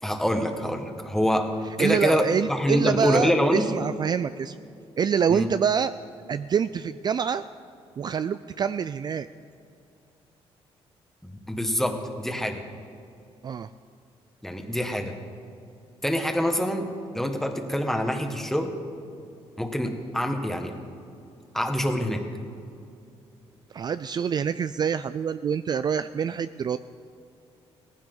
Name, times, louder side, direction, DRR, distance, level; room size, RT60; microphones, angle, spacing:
voice 1, 0.0-3.6 5.3-5.5 11.2-12.6 14.4-15.1 16.0-16.9 17.1-18.8 19.6-20.7 21.5-22.2, equal, 5° left, 4 dB, 1.6 m, -25 dB
voice 2, 1.8-4.6 5.0-5.9 6.3-7.4 8.0-9.3 13.4-13.7 23.7-26.8, right 7 dB, 40° right, 13 dB, 0.3 m, -26 dB
18.0 x 15.5 x 3.9 m, 2.6 s
cardioid pair, 90°, 11 cm